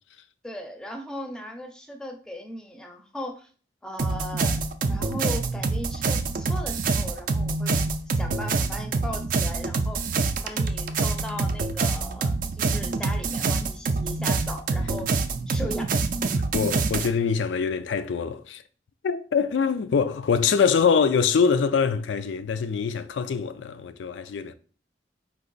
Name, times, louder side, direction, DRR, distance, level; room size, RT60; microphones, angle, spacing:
voice 1, 0.4-3.5 3.8-7.8 8.1-10.0 10.4-15.1 15.5-15.9, equal, 5° left, 0.5 m, -37 dB
sound 1, 4.0-17.1, right 3 dB, 45° right, 0.4 m, -26 dB
voice 2, 16.5-18.6 19.0-24.5, left 6 dB, 85° left, 0.4 m, -24 dB
4.5 x 2.9 x 3.9 m
head